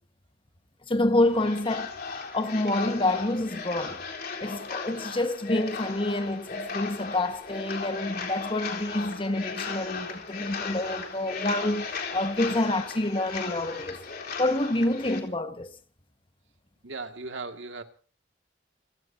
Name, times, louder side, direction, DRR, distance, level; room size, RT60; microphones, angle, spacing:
voice 1, 0.9-1.9 2.3-4.0 4.4-14.0 14.4-15.7, left 1 dB, 30° left, 1.5 m, -27 dB
sound 1, 1.2-15.2, left 5 dB, 55° left, 4.0 m, -36 dB
voice 2, 16.8-17.8, right 3 dB, 80° right, 2.2 m, -37 dB
29.0 x 17.5 x 2.8 m
head